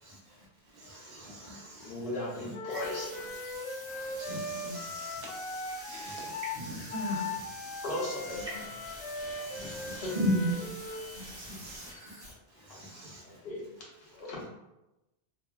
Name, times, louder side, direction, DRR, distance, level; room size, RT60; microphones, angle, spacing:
voice 1, 0.0-0.5 0.7-2.8 4.1-5.0 6.0-6.4 8.1-8.6 9.4-10.6 11.2-12.1 12.6-13.4, equal, 55° right, -4 dB, 0.7 m, -37 dB
voice 2, 1.8-3.1 7.8-8.6 9.6-9.7 10.0-10.1 12.7-12.8 13.2-14.4, left 1 dB, 70° left, -5 dB, 1.0 m, -37 dB
Wind instrument woodwind instrument, 2.5-11.0, left 2 dB, 45° left, 0.4 m, -39 dB
sound 1, 2.7-12.3, equal, 5° right, 1.1 m, -47 dB
voice 3, 4.2-5.2 5.7-7.4 11.1-11.9, equal, 70° right, -3 dB, 1.0 m, -41 dB
3.0 x 2.2 x 2.3 m, 0.97 s
omnidirectional pair, 1.0 m